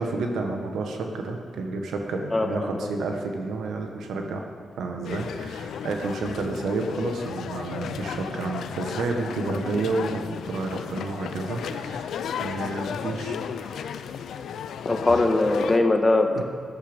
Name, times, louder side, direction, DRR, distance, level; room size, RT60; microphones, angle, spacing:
voice 1, 0.0-4.4 4.8-12.1 12.4-13.9 16.3-16.4, right 3 dB, 80° right, 3 dB, 1.4 m, -30 dB
voice 2, 2.3-2.9 14.8-16.4, left 2 dB, 30° left, 5 dB, 1.4 m, -21 dB
sound 1, 5.0-15.8, left 8 dB, 80° left, 0.5 m, -34 dB
13.5 x 9.9 x 5.3 m, 2.1 s
supercardioid pair, 55°, 0 cm